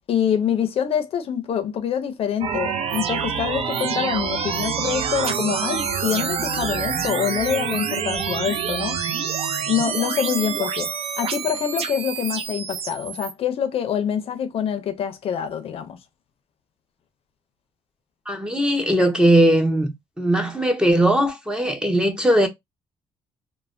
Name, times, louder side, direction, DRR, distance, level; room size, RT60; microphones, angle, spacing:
voice 1, 0.1-9.0 9.7-10.9 11.2-16.0, left 8 dB, 55° left, 0.5 m, -25 dB
sound 1, 2.4-13.3, right 6 dB, 55° right, 0.5 m, -27 dB
voice 2, 18.3-22.5, right 1 dB, 5° right, 0.6 m, -19 dB
3.2 x 2.1 x 2.4 m
cardioid pair, 140°, 12 cm